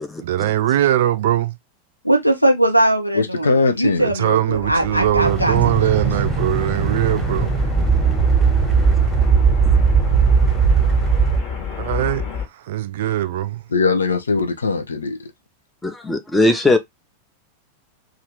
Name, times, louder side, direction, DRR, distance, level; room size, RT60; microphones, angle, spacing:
voice 1, 0.2-1.5 4.0-7.5 11.8-12.2 12.7-13.6, right 12 dB, 55° right, 0.4 m, -21 dB
voice 2, 2.0-5.9, right 1 dB, 90° left, 0.9 m, -19 dB
voice 3, 3.1-4.1 13.7-15.3, left 4 dB, 70° left, 0.5 m, -20 dB
sound 1, 4.5-12.5, left 6 dB, 40° left, 1.2 m, -28 dB
sound 2, 5.2-11.4, right 6 dB, 10° right, 1.1 m, -18 dB
voice 4, 15.8-16.8, left 2 dB, 10° left, 0.7 m, -18 dB
2.8 x 2.5 x 3.3 m
figure-of-eight pair, 90°, 0 cm